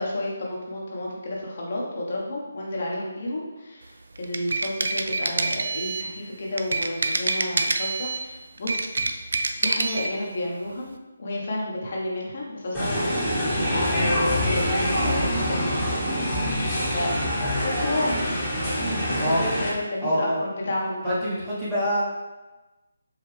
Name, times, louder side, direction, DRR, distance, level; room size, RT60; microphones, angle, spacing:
voice 1, 0.0-9.1 9.6-10.9 11.2-13.1 13.6-15.9 16.9-17.1 17.5-18.2 18.8-21.1, left 1 dB, 55° left, -3 dB, 1.0 m, -31 dB
sound 1, 4.2-6.1 6.6-8.3 8.6-10.1, right 3 dB, 65° right, 0.3 m, -26 dB
sound 2, 12.7-19.7, equal, 10° left, 1.2 m, -25 dB
voice 2, 20.0-20.4 21.0-22.0, equal, 10° right, -11 dB, 1.1 m, -25 dB
4.8 x 2.3 x 3.3 m, 1.1 s
figure-of-eight pair, 155°, 0 cm